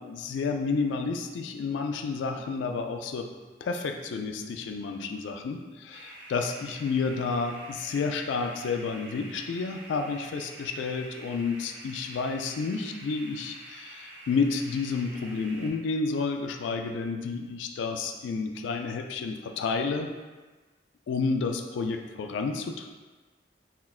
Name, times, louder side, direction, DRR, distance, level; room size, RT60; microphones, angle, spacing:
voice 1, 0.0-3.3 3.6-20.1 21.1-22.9, left 4 dB, 90° left, 5 dB, 0.3 m, -30 dB
sound 1, 5.9-15.7, right 1 dB, 80° right, 0.8 m, -47 dB
5.8 x 2.1 x 2.3 m, 1.3 s
head